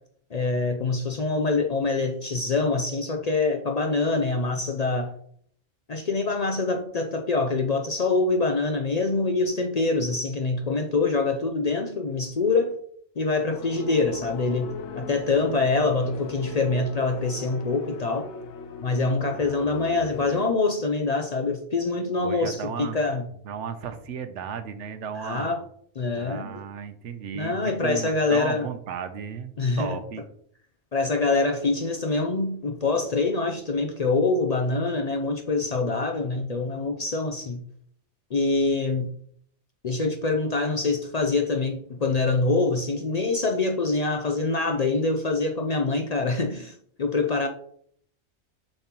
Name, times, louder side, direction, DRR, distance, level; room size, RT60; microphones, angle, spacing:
voice 1, 0.3-5.1 5.9-12.8 13.2-18.3 18.8-23.2 25.2-25.6 26.0-26.6 27.3-28.7 29.6-30.0 30.9-37.6 38.3-39.1 39.8-47.5, left 3 dB, 45° left, 0.5 m, -25 dB
sound 1, 13.5-20.5, left 3 dB, 75° left, 0.9 m, -39 dB
voice 2, 19.3-20.0 22.2-23.0 23.4-25.6 26.2-30.2, right 7 dB, 85° right, 1.0 m, -35 dB
7.0 x 5.5 x 2.9 m
omnidirectional pair, 1.2 m